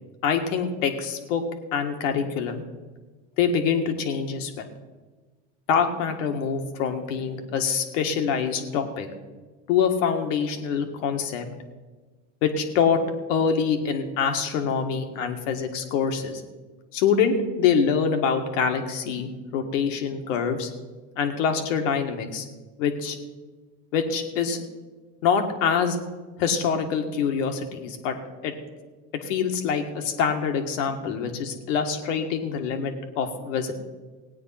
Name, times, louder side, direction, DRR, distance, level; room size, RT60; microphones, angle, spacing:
voice 1, 0.2-1.4 1.7-2.6 3.4-4.7 5.7-9.1 9.7-11.5 12.4-13.0 13.3-16.4 16.9-20.7 21.2-22.5 22.8-23.2 23.9-24.6 25.2-26.0 26.4-28.2 28.4-28.5 29.2-33.7, left 6 dB, 80° left, 5 dB, 1.9 m, -25 dB
17.0 x 9.1 x 5.8 m, 1.3 s
supercardioid pair, 100°, 38 cm